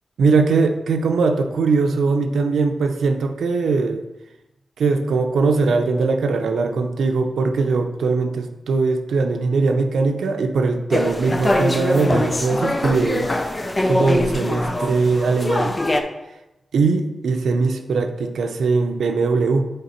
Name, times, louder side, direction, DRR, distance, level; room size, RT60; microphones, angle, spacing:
voice 1, 0.2-4.0 4.8-13.3 13.8-15.8 16.7-19.6, right 4 dB, 90° right, 6 dB, 0.6 m, -20 dB
sound 1, 10.9-16.0, left 1 dB, 20° left, 0.5 m, -23 dB
6.6 x 3.9 x 4.4 m, 0.96 s
wide cardioid pair, 145°, 0 cm